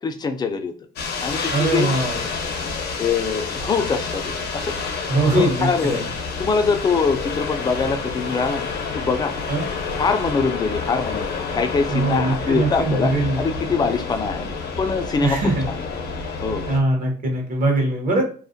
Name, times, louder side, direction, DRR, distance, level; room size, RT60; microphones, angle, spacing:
voice 1, 0.0-0.7 1.2-1.9 3.0-4.7 5.3-6.0 6.4-8.7 8.9-9.3 10.0-14.5 14.8-15.4 15.7-15.9 16.4-16.7, left 5 dB, 25° left, 7 dB, 0.3 m, -23 dB
sound 1, 1.0-16.8, left 4 dB, 70° left, 0.7 m, -29 dB
voice 2, 1.5-2.2 5.1-6.0 9.5-9.6 11.9-13.4 15.2-15.7 16.7-18.2, right 2 dB, 55° right, 2 dB, 0.9 m, -21 dB
2.3 x 2.0 x 2.5 m, 0.41 s
cardioid pair, 110°, 17 cm